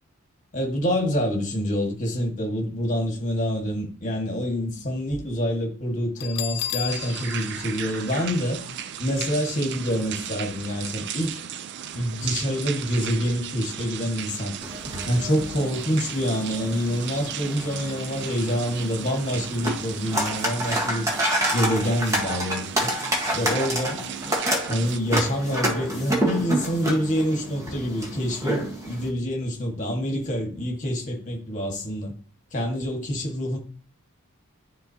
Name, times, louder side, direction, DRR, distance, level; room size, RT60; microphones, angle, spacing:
voice 1, 0.5-8.6 9.0-11.4 11.9-14.5 15.0-21.1 21.5-22.9 23.3-24.0 24.7-32.1 32.5-33.6, equal, 35° left, 1.7 m, -26 dB
Bell, 6.2-8.9, left 11 dB, 90° left, 0.4 m, -34 dB
sound 1, 6.9-25.0, right 9 dB, 50° right, 0.4 m, -36 dB
sound 2, 14.6-29.1, right 1 dB, 15° right, 1.4 m, -29 dB
10.5 x 3.9 x 2.8 m
head